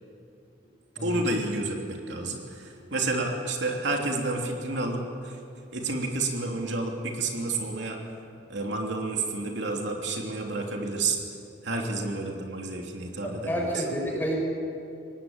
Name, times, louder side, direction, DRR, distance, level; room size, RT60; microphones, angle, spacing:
voice 1, 1.0-5.4 5.7-8.0 8.5-11.2 11.6-13.8, right 2 dB, 70° right, 1 dB, 3.0 m, -30 dB
voice 2, 13.2-14.4, equal, 10° left, -1 dB, 6.0 m, -30 dB
24.0 x 19.0 x 8.9 m, 2.6 s
head